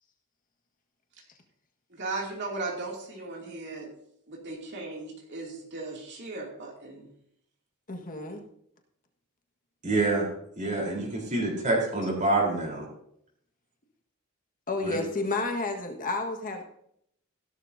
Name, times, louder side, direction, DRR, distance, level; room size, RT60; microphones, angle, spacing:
voice 1, 1.9-3.9 4.3-7.1, right 3 dB, 55° right, -2 dB, 2.7 m, -37 dB
voice 2, 7.9-8.4 14.7-16.6, left 3 dB, 40° left, 3 dB, 1.7 m, -31 dB
voice 3, 9.8-10.2 10.6-12.9 14.8-15.0, right 2 dB, 35° right, -2 dB, 4.0 m, -26 dB
16.0 x 12.0 x 2.8 m, 0.71 s
head